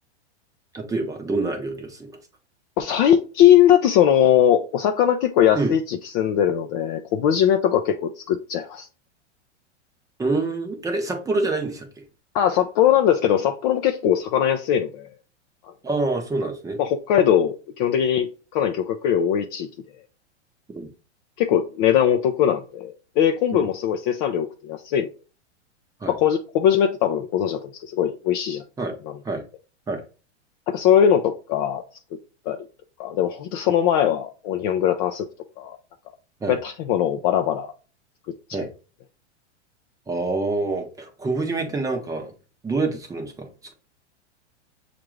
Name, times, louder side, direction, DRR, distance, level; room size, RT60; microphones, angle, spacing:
voice 1, 0.7-2.1 5.5-5.7 10.2-11.9 15.8-16.8 20.7-20.9 23.5-23.7 26.0-26.1 28.8-28.9 29.2-29.4 29.9-30.0 36.4-36.6 38.5-38.7 40.1-42.3 42.6-43.7, right 3 dB, 10° right, 0.6 m, -26 dB
voice 2, 2.8-8.9 12.3-15.1 15.6-15.7 16.8-18.3 18.5-19.7 21.4-25.1 26.1-28.6 30.7-31.8 32.5-32.6 33.0-35.3 35.6-35.8 36.5-37.7 38.5-38.7, left 9 dB, 35° left, 0.4 m, -20 dB
6.5 x 2.5 x 3.0 m
hypercardioid pair, 135°, 35 cm